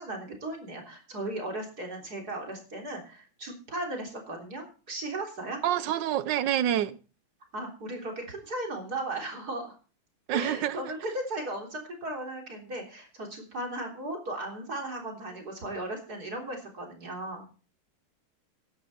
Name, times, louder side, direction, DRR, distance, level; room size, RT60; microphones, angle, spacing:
voice 1, 0.0-5.6 7.5-9.7 10.3-17.4, right 1 dB, 45° right, 4.0 m, -36 dB
voice 2, 5.6-7.0 10.3-10.8, right 11 dB, 65° right, 1.3 m, -27 dB
16.5 x 11.5 x 4.3 m
omnidirectional pair, 2.3 m